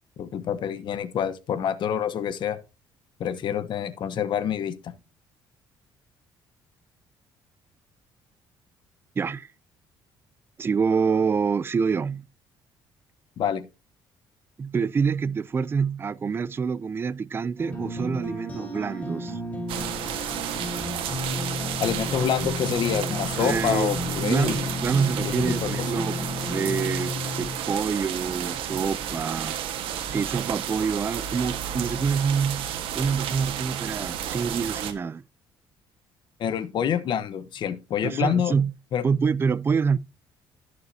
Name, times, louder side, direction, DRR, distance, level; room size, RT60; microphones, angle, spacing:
voice 1, 0.2-2.6 3.2-4.9 13.4-13.6 21.8-24.7 25.2-25.9 36.4-38.5 38.9-39.0, left 8 dB, 60° left, 1.1 m, -27 dB
voice 2, 9.2-9.5 10.6-12.3 14.6-19.4 23.4-26.2 26.5-29.6 30.1-35.2 38.0-38.7 39.0-40.0, right 5 dB, 25° right, 0.4 m, -26 dB
sound 1, 17.6-27.6, left 2 dB, 15° left, 4.5 m, -32 dB
sound 2, 19.7-34.9, right 9 dB, 80° right, 1.5 m, -32 dB
16.0 x 6.6 x 2.8 m
cardioid pair, 110°, 9 cm